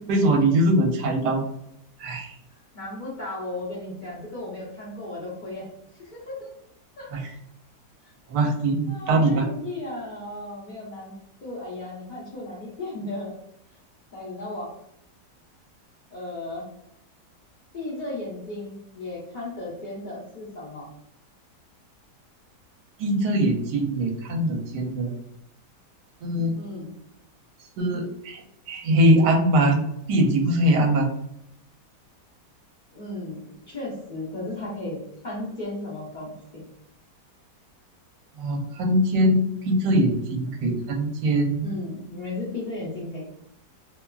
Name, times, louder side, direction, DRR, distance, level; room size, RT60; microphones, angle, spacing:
voice 1, 0.1-1.4 2.0-2.3 7.1-7.2 8.3-9.4 23.0-25.1 26.2-26.5 27.8-28.4 28.7-29.8 30.1-31.1 38.4-41.7, right 1 dB, 80° right, 3 dB, 1.2 m, -22 dB
voice 2, 2.5-5.7 6.0-6.5 7.0-7.1 8.0-8.1 8.9-11.1 11.4-13.3 14.1-14.7 16.1-16.7 17.7-20.9 26.5-26.9 32.9-35.0 35.2-36.6 41.6-43.3, left 2 dB, 55° left, -6 dB, 0.5 m, -35 dB
2.9 x 2.3 x 2.2 m, 0.76 s
omnidirectional pair, 1.9 m